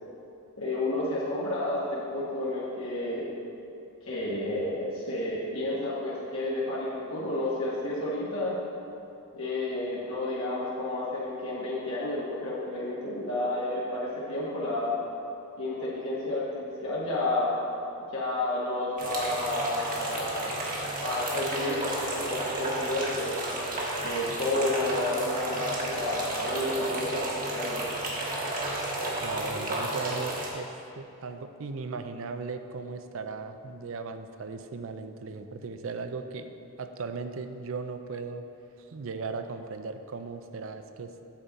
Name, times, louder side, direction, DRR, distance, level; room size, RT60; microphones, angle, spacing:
voice 1, 0.6-3.2 4.0-8.5 9.3-15.0 15.6-17.5 18.1-23.4 24.0-27.2 27.5-27.9, left 2 dB, 70° left, -7 dB, 1.5 m, -31 dB
sound 1, 19.0-30.5, right 2 dB, 40° right, 1.3 m, -32 dB
voice 2, 29.2-30.7 31.0-36.5 36.8-38.4 38.9-41.1, right 4 dB, 65° right, 8 dB, 0.5 m, -37 dB
8.8 x 7.4 x 4.1 m, 2.8 s
head